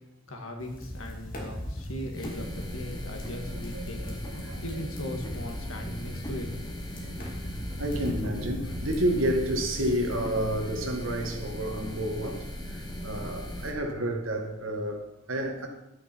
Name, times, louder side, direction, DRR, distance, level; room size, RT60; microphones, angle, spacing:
voice 1, 0.3-6.6, left 1 dB, 90° left, 2.0 m, -39 dB
sound 1, 0.6-10.2, equal, 45° left, 2.8 m, -39 dB
sound 2, 2.1-13.7, equal, 20° left, 1.5 m, -38 dB
voice 2, 3.7-4.6 7.0-7.2 7.7-15.7, right 1 dB, 70° right, 1.8 m, -30 dB
10.5 x 9.8 x 4.6 m
head